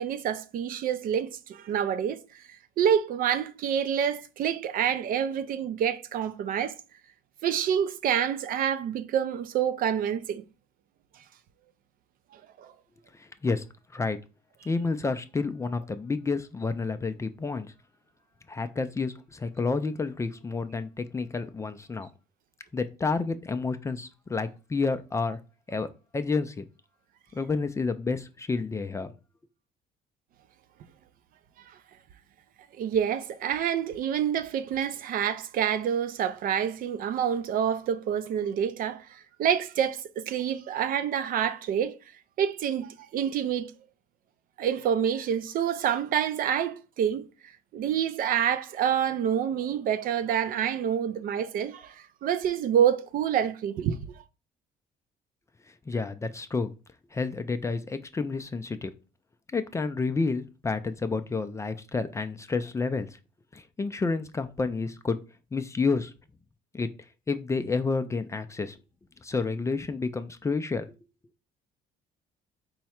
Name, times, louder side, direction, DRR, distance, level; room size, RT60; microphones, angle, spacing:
voice 1, 0.0-2.2 2.8-6.8 7.4-10.4 12.6-12.7 32.8-42.0 42.4-43.7 44.6-47.3 47.7-54.2, right 9 dB, 55° right, 0.4 m, -27 dB
voice 2, 14.7-17.7 18.5-22.1 22.7-25.4 25.7-25.9 26.1-26.6 27.3-29.1 55.9-56.7 57.1-58.9 59.5-63.1 63.5-65.2 65.5-66.1 66.7-66.9 67.3-68.8 69.2-70.9, left 4 dB, 15° left, 0.3 m, -29 dB
4.6 x 2.1 x 4.2 m
cardioid pair, 110°, 17 cm